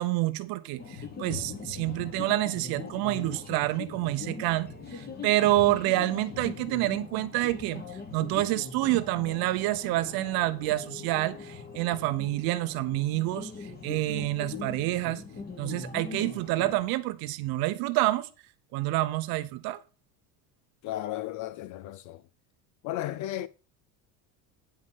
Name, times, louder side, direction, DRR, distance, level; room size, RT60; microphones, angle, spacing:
voice 1, 0.0-7.8 8.1-13.5 13.8-15.2 15.6-18.3 18.7-19.8, right 17 dB, 50° right, 0.8 m, -28 dB
sound 1, 0.8-16.8, left 4 dB, 20° left, 1.4 m, -41 dB
voice 2, 20.8-22.2 22.8-23.5, left 14 dB, 45° left, 0.4 m, -34 dB
9.5 x 5.5 x 5.3 m
cardioid pair, 160°, 45 cm